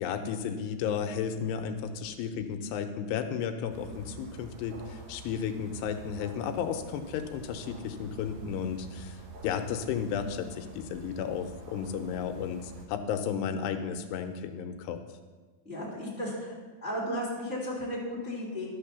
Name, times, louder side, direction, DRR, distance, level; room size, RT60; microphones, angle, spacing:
voice 1, 0.0-15.0, left 7 dB, 85° left, 7 dB, 2.8 m, -33 dB
sound 1, 3.7-12.9, right 2 dB, 60° right, 1.9 m, -47 dB
voice 2, 15.6-16.5 16.8-18.7, equal, 5° right, -5 dB, 1.8 m, -34 dB
12.0 x 6.1 x 6.8 m, 1.4 s
omnidirectional pair, 4.8 m